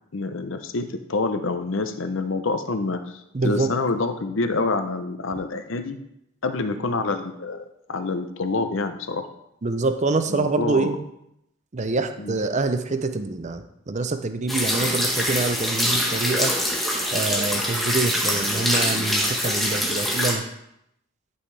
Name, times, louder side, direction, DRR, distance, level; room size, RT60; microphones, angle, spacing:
voice 1, 0.1-6.0 6.4-9.2 10.3-10.9 12.2-12.4, left 3 dB, 65° left, 8 dB, 0.7 m, -27 dB
voice 2, 3.3-3.7 9.6-11.0 11.7-16.5 17.1-20.4, right 3 dB, 35° right, 8 dB, 0.6 m, -25 dB
sound 1, 14.5-20.3, equal, ahead, 1.2 m, -24 dB
11.0 x 5.6 x 3.4 m, 0.80 s
head